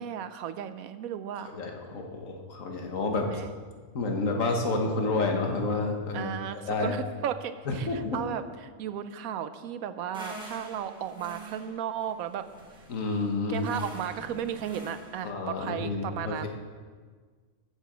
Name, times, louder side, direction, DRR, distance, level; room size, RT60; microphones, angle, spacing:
voice 1, 0.0-1.5 3.1-3.5 6.1-8.4 8.8-12.4 13.5-16.5, right 9 dB, 90° right, 11 dB, 1.1 m, -35 dB
voice 2, 1.5-3.3 3.9-6.3 6.7-6.9 7.7-8.2 12.9-13.7 15.2-16.5, left 3 dB, 70° left, 2 dB, 1.6 m, -29 dB
sound 1, 10.1-15.3, right 2 dB, 5° right, 1.8 m, -45 dB
14.0 x 6.9 x 5.0 m, 1.6 s
omnidirectional pair, 1.4 m